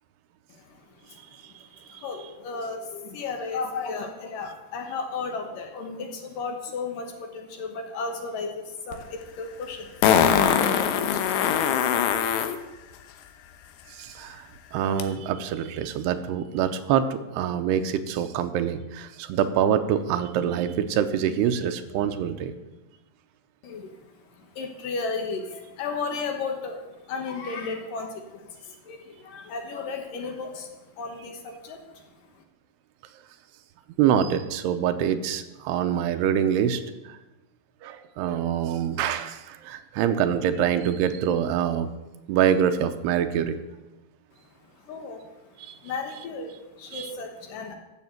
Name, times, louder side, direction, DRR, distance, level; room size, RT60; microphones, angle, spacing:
voice 1, 0.5-11.8 23.6-24.0 24.2-32.0 32.3-32.4 44.8-45.2 45.5-45.6 45.8-47.8, left 4 dB, 65° left, 3 dB, 2.5 m, -35 dB
Fart, 8.9-9.0 10.0-12.6 15.0-15.1, left 8 dB, 85° left, 3.0 m, -21 dB
voice 2, 13.9-22.5 34.0-37.2 37.8-41.9 42.3-43.6 45.6-45.7 46.9-47.2, right 9 dB, 85° right, 9 dB, 2.7 m, -25 dB
12.5 x 7.3 x 7.7 m, 1.1 s
omnidirectional pair, 4.8 m